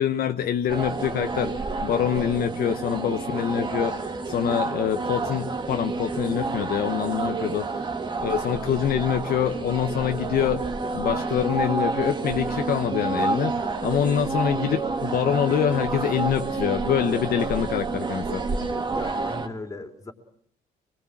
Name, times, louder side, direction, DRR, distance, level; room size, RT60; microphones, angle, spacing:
voice 1, 0.0-1.5 1.8-7.9 8.2-10.6 10.9-13.5 13.8-18.4, left 9 dB, 60° left, 6 dB, 1.3 m, -25 dB
sound 1, 0.7-19.5, right 3 dB, 25° right, 2.2 m, -29 dB
voice 2, 18.9-20.1, left 2 dB, 20° left, 5 dB, 3.2 m, -37 dB
25.0 x 22.0 x 7.5 m, 0.63 s
cardioid pair, 110°, 17 cm